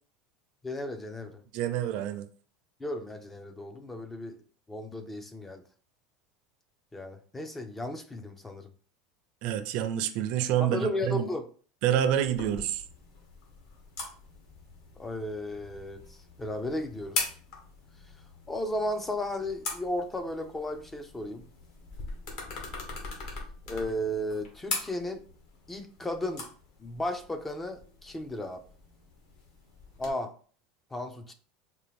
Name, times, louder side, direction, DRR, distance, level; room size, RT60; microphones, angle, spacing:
voice 1, 0.6-1.4 2.8-4.4 4.7-5.6 6.9-8.7 10.6-11.5 15.0-16.0 16.4-17.3 18.5-21.4 23.7-25.2 25.7-26.5 26.8-28.6 30.0-30.3 30.9-31.3, left 1 dB, 10° left, 0.3 m, -34 dB
voice 2, 1.5-2.3 9.4-11.3 11.8-12.8, right 10 dB, 55° right, 0.4 m, -27 dB
sound 1, 12.2-30.1, left 3 dB, 60° left, 1.2 m, -41 dB
4.2 x 2.2 x 3.5 m
supercardioid pair, 150°, 2 cm